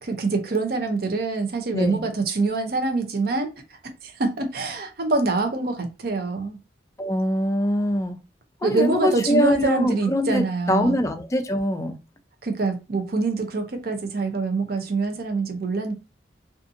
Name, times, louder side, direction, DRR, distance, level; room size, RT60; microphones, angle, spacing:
voice 1, 0.0-6.6 8.6-11.0 12.4-15.9, right 3 dB, 55° right, 0.6 m, -25 dB
voice 2, 1.7-2.0 7.0-8.2 8.6-12.0, equal, 15° left, 0.3 m, -23 dB
2.6 x 2.5 x 2.5 m
head